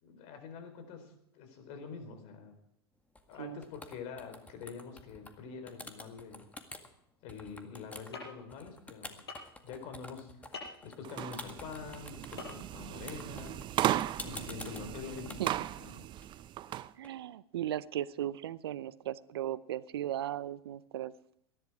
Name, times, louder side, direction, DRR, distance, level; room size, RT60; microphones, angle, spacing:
voice 1, 0.0-2.6 3.3-6.4 7.2-9.3 9.6-13.6 14.2-15.4 15.8-16.0, left 5 dB, 55° left, 7 dB, 4.3 m, -46 dB
sound 1, 3.1-3.4 3.6-5.3 5.7-6.9 7.3-17.1, left 2 dB, 10° left, 1.9 m, -48 dB
sound 2, 8.1-8.2 9.3-9.5 10.5-10.8 12.4-12.5 12.8-12.9, left 4 dB, 90° left, 6.2 m, -42 dB
sound 3, 11.0-16.9, right 13 dB, 35° right, 0.6 m, -36 dB
voice 2, 14.3-14.7 15.4-15.5 17.0-21.1, right 12 dB, 75° right, 18 dB, 0.6 m, -37 dB
21.0 x 11.0 x 4.9 m, 0.75 s
hypercardioid pair, 95°, 13 cm